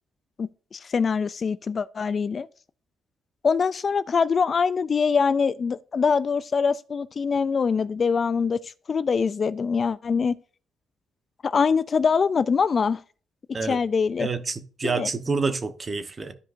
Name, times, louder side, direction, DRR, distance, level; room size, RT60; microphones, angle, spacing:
voice 1, 0.4-2.5 3.4-10.4 11.4-13.0 13.6-14.3 14.8-15.1, left 5 dB, 40° left, 0.3 m, -24 dB
voice 2, 14.2-16.3, right 4 dB, 30° right, 1.0 m, -28 dB
13.0 x 5.0 x 2.6 m
cardioid pair, 90°, 0 cm